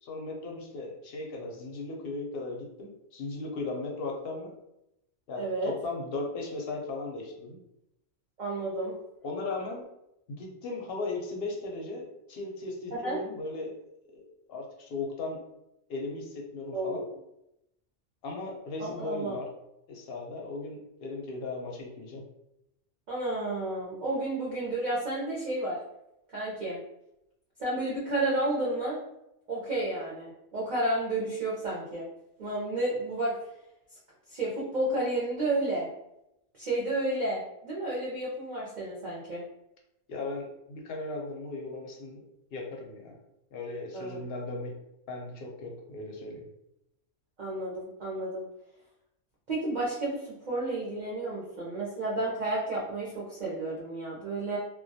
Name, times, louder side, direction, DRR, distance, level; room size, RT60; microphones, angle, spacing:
voice 1, 0.0-4.5 5.3-7.6 9.2-9.8 10.3-13.8 14.1-14.2 14.5-15.4 15.9-17.0 18.2-19.5 19.9-22.2 40.1-42.2 42.5-43.2 43.5-44.8 45.1-46.5, left 3 dB, 60° left, 0 dB, 0.7 m, -37 dB
voice 2, 5.4-5.7 8.4-8.9 12.9-13.2 16.7-17.0 18.8-19.4 23.1-25.8 26.3-26.8 27.6-29.0 29.5-32.1 32.4-33.3 34.3-35.9 36.6-39.4 43.9-44.2 47.4-48.4 49.5-54.6, right 2 dB, 50° right, -6 dB, 0.5 m, -31 dB
2.2 x 2.2 x 2.6 m, 0.84 s
omnidirectional pair, 1.3 m